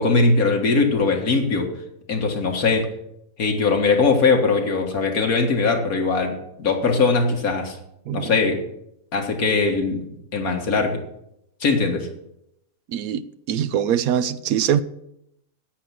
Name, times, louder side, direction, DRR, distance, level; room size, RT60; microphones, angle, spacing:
voice 1, 0.0-1.7 2.1-2.9 3.4-7.8 8.1-8.6 9.1-10.0 10.3-11.0 11.6-12.1, left 4 dB, 80° left, 2.2 m, -20 dB
voice 2, 8.1-8.4 12.9-14.8, right 9 dB, 85° right, 1.1 m, -23 dB
10.0 x 8.3 x 7.6 m
omnidirectional pair, 1.5 m